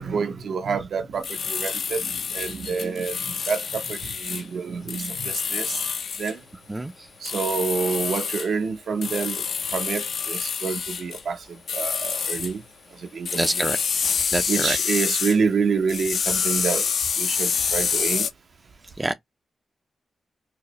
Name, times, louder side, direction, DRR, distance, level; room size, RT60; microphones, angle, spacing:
voice 1, 0.0-5.8 6.2-6.4 7.2-9.4 9.7-11.4 11.7-12.6 13.1-13.7 14.5-16.9 17.2-18.3, right 5 dB, 75° right, 0.7 m, -27 dB
sound 1, 1.2-4.4 4.9-6.3 7.2-8.5 9.0-11.2 11.7-12.5 13.2-15.4 15.9-18.3, left 6 dB, 70° left, 0.5 m, -27 dB
voice 2, 13.3-13.8 14.3-14.8 19.0-19.1, right 2 dB, 15° right, 0.4 m, -25 dB
4.7 x 2.0 x 3.0 m
wide cardioid pair, 120°, 0 cm